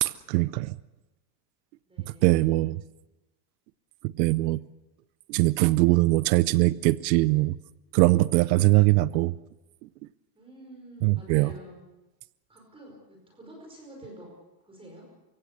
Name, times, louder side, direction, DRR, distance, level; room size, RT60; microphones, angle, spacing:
voice 1, 0.0-0.8 2.1-2.8 4.2-4.6 5.3-7.6 7.9-9.3 11.0-11.5, right 19 dB, 75° right, 17 dB, 0.8 m, -22 dB
voice 2, 1.9-2.7 10.3-11.8 12.5-14.3 14.6-15.1, right 1 dB, 10° right, 0 dB, 5.1 m, -48 dB
29.0 x 17.0 x 6.8 m, 1.1 s
cardioid pair, 165°, 50 cm